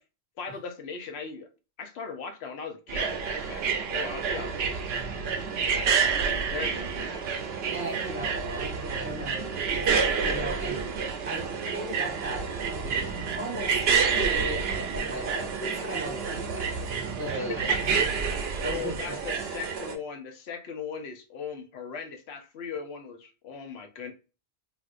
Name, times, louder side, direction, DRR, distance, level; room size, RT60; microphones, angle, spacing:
voice 1, 0.4-1.5 1.8-4.6 5.7-7.2 17.3-17.8 18.6-24.1, left 6 dB, 80° left, 0.9 m, -38 dB
sound 1, 2.9-19.9, right 6 dB, 75° right, 0.8 m, -29 dB
voice 2, 7.7-10.8 11.3-13.7 14.0-16.7 17.2-18.1 18.6-19.2, right 1 dB, 10° right, 1.0 m, -37 dB
3.5 x 2.5 x 2.4 m
omnidirectional pair, 1.1 m